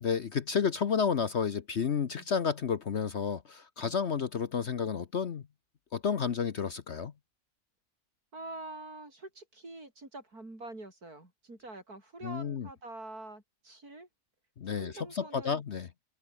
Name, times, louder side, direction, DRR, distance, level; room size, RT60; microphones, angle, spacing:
voice 1, 0.0-5.4 5.9-7.1 12.2-12.7 14.6-15.9, left 6 dB, 50° left, 1.1 m, -31 dB
voice 2, 8.3-14.1 14.6-15.6, right 2 dB, 70° right, 6.9 m, -46 dB
omnidirectional pair, 1.7 m